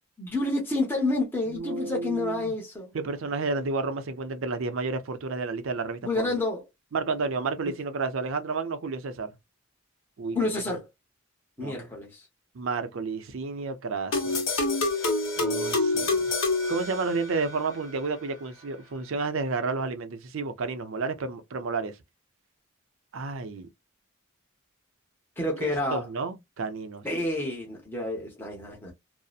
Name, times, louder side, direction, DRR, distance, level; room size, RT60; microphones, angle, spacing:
voice 1, 0.2-2.9 6.0-6.6 7.7-7.8 10.3-10.9 11.6-12.3 25.4-26.1 27.0-28.9, left 2 dB, 10° left, 0.7 m, -29 dB
voice 2, 1.5-2.5 2.9-6.4 6.9-9.3 10.2-10.4 11.6-11.9 12.5-14.4 15.4-16.2 16.7-22.0 23.1-23.7 25.6-27.1, right 4 dB, 65° right, 0.5 m, -31 dB
sound 1, 14.1-17.6, left 3 dB, 60° left, 1.0 m, -27 dB
2.6 x 2.0 x 2.3 m
head